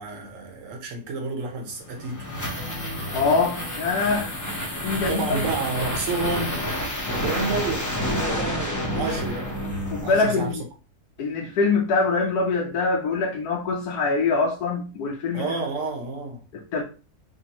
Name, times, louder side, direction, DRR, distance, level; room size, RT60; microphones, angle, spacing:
voice 1, 0.0-2.3 4.9-6.6 7.2-7.9 8.2-9.5 10.0-10.5 15.3-16.4, right 4 dB, 55° right, 1.1 m, -30 dB
sound 1, 1.7-10.5, left 1 dB, 15° left, 0.6 m, -29 dB
voice 2, 3.1-4.3 4.8-5.5 9.9-10.6 11.2-15.5 16.5-16.8, left 4 dB, 70° left, 1.1 m, -24 dB
5.1 x 2.2 x 2.9 m
omnidirectional pair, 1.7 m